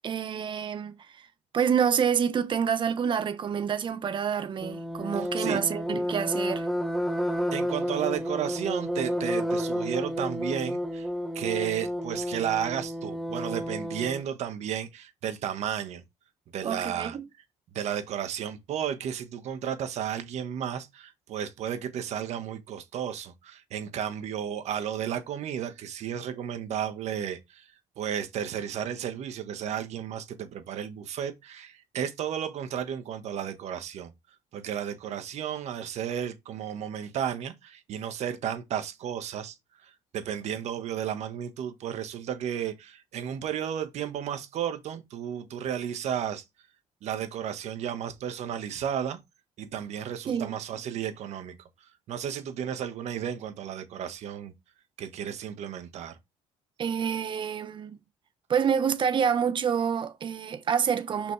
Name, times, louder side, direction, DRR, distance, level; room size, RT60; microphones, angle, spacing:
voice 1, 0.0-1.2 1.5-6.7 16.6-17.2 50.3-50.5 56.8-58.0 58.5-61.3, right 7 dB, 40° right, 1.2 m, -27 dB
sound 1, 4.6-14.2, equal, ahead, 1.2 m, -31 dB
voice 2, 5.2-5.6 7.2-11.1 11.3-16.0 16.5-17.2 17.7-27.7 28.0-34.1 34.5-46.4 47.0-49.2 49.6-51.6 52.1-54.5 55.0-56.2, right 9 dB, 60° right, 1.6 m, -33 dB
6.1 x 5.2 x 3.4 m
cardioid pair, 110°, 13 cm